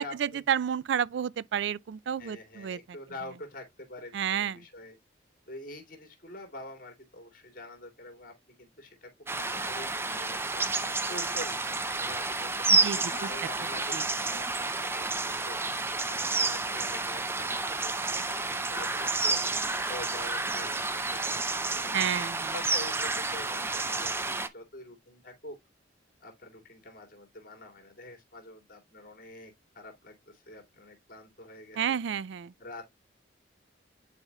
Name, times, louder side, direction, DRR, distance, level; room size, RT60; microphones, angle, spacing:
voice 1, 0.0-2.8 4.1-4.6 12.7-13.3 13.9-14.0 21.9-22.5 31.7-32.5, right 8 dB, 70° right, 0.3 m, -30 dB
voice 2, 2.2-4.9 5.5-15.6 16.0-21.9 22.5-25.6 26.2-32.0 32.6-32.8, left 1 dB, 50° left, 2.6 m, -46 dB
sound 1, 9.3-24.5, right 3 dB, 15° right, 0.5 m, -30 dB
9.8 x 4.3 x 2.3 m
head